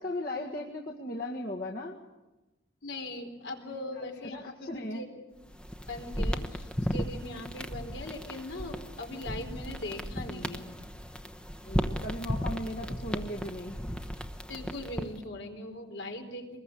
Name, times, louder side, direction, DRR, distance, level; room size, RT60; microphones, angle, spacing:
voice 1, 0.0-2.0 4.0-4.1 4.3-5.0 11.6-13.8, left 1 dB, 50° left, -1 dB, 1.9 m, -37 dB
voice 2, 2.8-5.3 5.9-10.7 14.5-16.6, left 1 dB, 70° left, 4 dB, 4.0 m, -40 dB
sound 1, 5.4-15.2, equal, 5° left, 1.0 m, -35 dB
25.0 x 21.0 x 8.7 m, 1.1 s
head